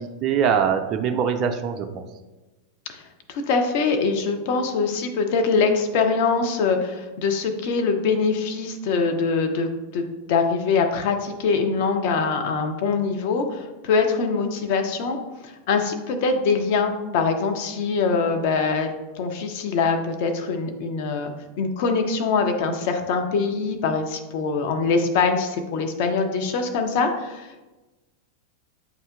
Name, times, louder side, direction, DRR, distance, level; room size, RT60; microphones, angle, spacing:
voice 1, 0.0-2.0, right 7 dB, 35° right, 5 dB, 0.4 m, -23 dB
voice 2, 3.3-9.7 9.9-10.0 10.3-15.2 15.4-18.9 19.2-21.3 21.6-27.7, left 4 dB, 50° left, 5 dB, 0.6 m, -23 dB
7.8 x 2.8 x 2.3 m, 1.1 s
figure-of-eight pair, 90°, 0 cm